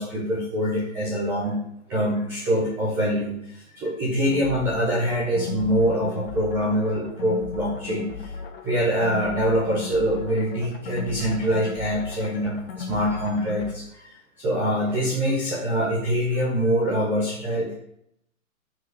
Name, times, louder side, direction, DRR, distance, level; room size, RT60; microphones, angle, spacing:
voice 1, 0.0-1.6 1.9-8.3 8.6-14.1 14.4-17.7, equal, 5° right, -6 dB, 0.5 m, -24 dB
sound 1, 4.2-13.7, left 5 dB, 40° left, 1.4 m, -37 dB
12.5 x 4.9 x 4.8 m, 0.72 s
hypercardioid pair, 145°, 42 cm